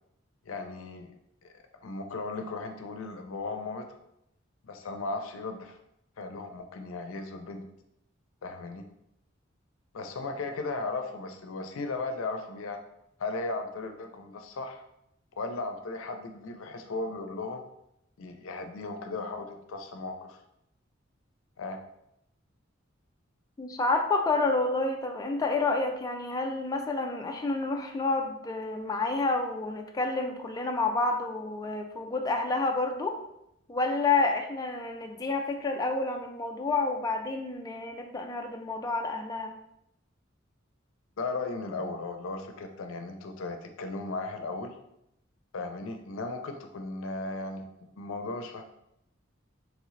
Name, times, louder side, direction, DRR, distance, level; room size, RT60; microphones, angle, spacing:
voice 1, 0.4-1.1 1.4-1.5 1.8-3.9 4.6-5.8 6.2-7.6 8.4-8.8 9.9-12.8 13.2-14.8 15.4-17.7 18.2-20.4 21.6-21.8 41.2-44.8 45.5-48.6, left 3 dB, 80° left, 6 dB, 0.5 m, -36 dB
voice 2, 23.6-33.2 33.7-39.5, left 3 dB, 20° left, 2 dB, 0.3 m, -29 dB
3.6 x 3.2 x 3.1 m, 0.80 s
head